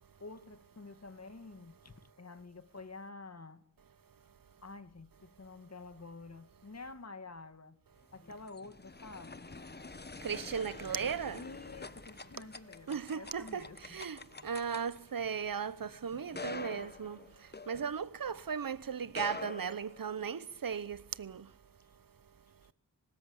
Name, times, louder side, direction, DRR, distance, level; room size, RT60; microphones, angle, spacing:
voice 1, 0.2-3.6 4.6-7.8 8.1-9.5 11.4-14.0 22.6-22.7, left 3 dB, 50° left, 2.2 m, -49 dB
sound 1, 8.0-18.4 19.0-20.5, left 3 dB, 30° left, 1.1 m, -47 dB
voice 2, 10.2-11.4 12.9-17.2 17.7-21.4, right 6 dB, 80° right, 0.9 m, -37 dB
25.5 x 19.5 x 8.8 m
wide cardioid pair, 70°, 33 cm